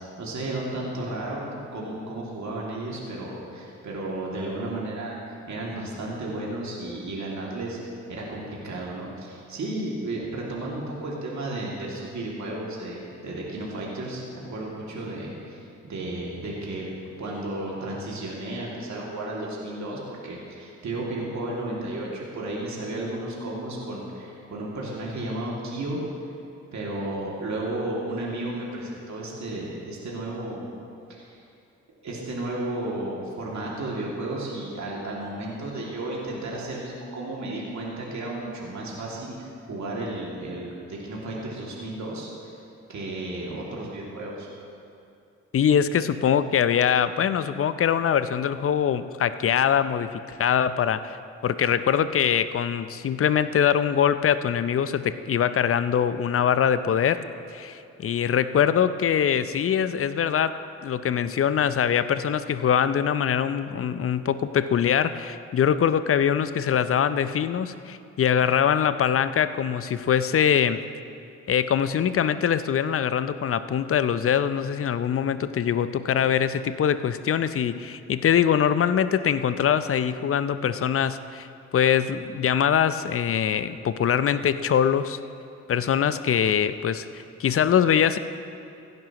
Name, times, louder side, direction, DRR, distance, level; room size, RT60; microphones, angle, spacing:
voice 1, 0.0-16.9 17.2-26.0 26.7-30.7 31.1-31.4 32.0-42.6 42.9-44.5, right 2 dB, 50° right, -4 dB, 2.5 m, -33 dB
voice 2, 45.5-51.2 51.4-57.2 57.5-70.9 71.5-81.5 81.7-85.2 85.7-87.1 87.4-88.2, left 8 dB, 40° left, 13 dB, 0.6 m, -23 dB
16.0 x 10.5 x 3.0 m, 2.6 s
hypercardioid pair, 40°, 36 cm